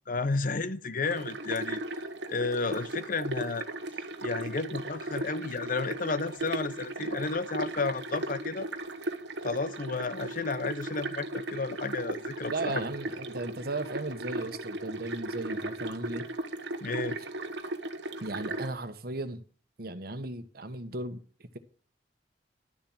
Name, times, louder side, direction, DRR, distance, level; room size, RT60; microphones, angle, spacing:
voice 1, 0.1-1.8 2.3-3.7 4.2-8.7 9.4-12.8 16.8-17.2, left 3 dB, 50° left, 0.7 m, -32 dB
sound 1, 1.1-18.7, right 2 dB, 90° right, 1.3 m, -37 dB
voice 2, 12.5-16.3 18.2-19.4 19.8-21.6, right 2 dB, 60° right, 1.3 m, -36 dB
11.5 x 7.3 x 7.9 m
head